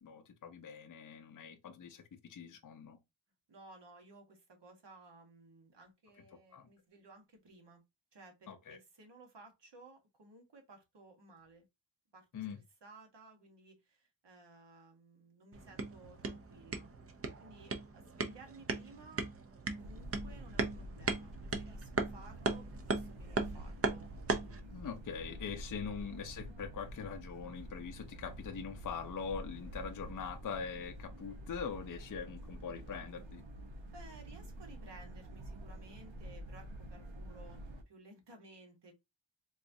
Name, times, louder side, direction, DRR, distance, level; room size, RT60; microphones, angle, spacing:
voice 1, 0.0-3.0 6.5-6.7 8.5-8.8 12.3-12.6 24.7-33.4, left 6 dB, 45° left, 0.5 m, -43 dB
voice 2, 3.5-7.8 8.1-11.6 12.1-12.4 12.8-16.9 17.4-19.2 19.7-24.1 29.7-29.8 33.9-38.9, right 2 dB, 65° right, 1.1 m, -57 dB
sound 1, 15.5-24.6, right 3 dB, 30° right, 0.5 m, -38 dB
sound 2, 19.8-37.8, right 1 dB, 85° right, 0.8 m, -48 dB
3.9 x 2.3 x 2.6 m
wide cardioid pair, 95°, 45 cm